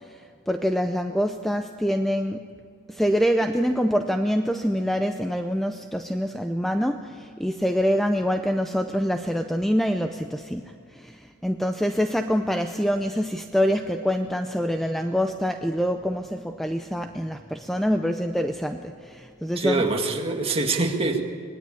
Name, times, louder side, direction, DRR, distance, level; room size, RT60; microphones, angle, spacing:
voice 1, 0.5-2.5 2.9-19.8, equal, ahead, 6 dB, 0.6 m, -25 dB
voice 2, 19.6-21.2, right 3 dB, 25° right, 2 dB, 2.0 m, -24 dB
25.5 x 19.5 x 8.5 m, 2.3 s
head